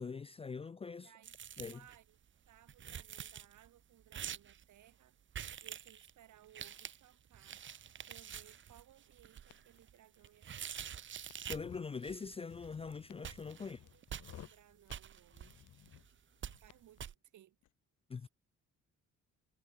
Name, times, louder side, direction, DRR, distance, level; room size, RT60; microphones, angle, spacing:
voice 1, 0.0-1.1 1.6-1.8 11.4-13.8 18.1-18.3, left 5 dB, 20° left, 0.4 m, -43 dB
voice 2, 1.0-2.2 2.4-5.2 5.6-7.6 8.1-10.9 13.6-15.6 16.6-17.6 18.2-18.3, right 12 dB, 75° right, 6.8 m, -63 dB
sound 1, 1.2-2.0 2.3-2.4 2.6-3.7 4.1-4.6 5.3-6.1 6.4-11.7 12.0-12.3 12.6-12.9 13.2-14.6 14.9-16.1 16.4-16.7 17.0-17.1, right 9 dB, 40° right, 0.7 m, -47 dB
Crackle, 9.4-17.7, left 14 dB, 80° left, 4.0 m, -69 dB
sound 2, 11.4-11.9 12.5-14.7 15.3-16.1 16.4-16.6, left 11 dB, 60° left, 1.0 m, -56 dB
cardioid pair, 90°, 30 cm